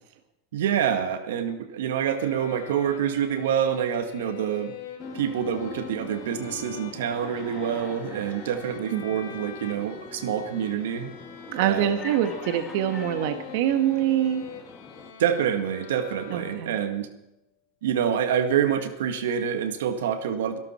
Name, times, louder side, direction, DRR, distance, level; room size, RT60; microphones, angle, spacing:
voice 1, 0.5-4.7 5.1-11.1 11.6-11.9 15.2-17.1 17.8-20.6, right 8 dB, 85° right, 8 dB, 1.8 m, -26 dB
sound 1, 2.0-17.0, left 8 dB, 85° left, 3.3 m, -43 dB
sound 2, 5.0-15.1, left 4 dB, 15° left, 2.5 m, -44 dB
voice 2, 11.5-14.4 16.3-16.7, right 11 dB, 65° right, 7 dB, 1.6 m, -25 dB
23.5 x 13.0 x 4.5 m, 0.89 s
supercardioid pair, 140°, 0 cm